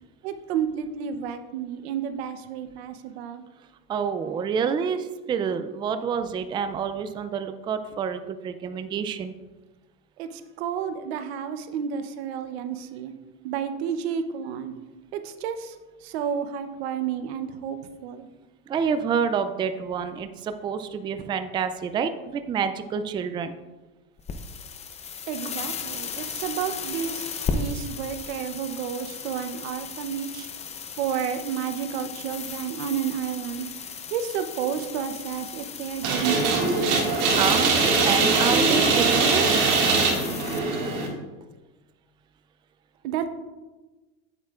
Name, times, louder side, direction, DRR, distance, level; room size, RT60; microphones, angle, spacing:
voice 1, 0.2-3.5 10.2-13.1 13.4-14.7 15.1-15.8 16.0-18.3 25.3-27.3 27.5-30.5 31.0-33.7 34.1-36.7 43.0-43.3, right 8 dB, 90° right, 10 dB, 0.8 m, -31 dB
voice 2, 3.9-9.3 18.7-23.6 37.3-39.7, right 7 dB, 15° right, 9 dB, 0.3 m, -28 dB
sound 1, 24.2-40.6, left 5 dB, 20° left, 0.6 m, -36 dB
sound 2, 36.0-41.1, right 4 dB, 60° right, 2.1 m, -21 dB
8.4 x 8.1 x 2.4 m, 1.2 s
supercardioid pair, 130°, 31 cm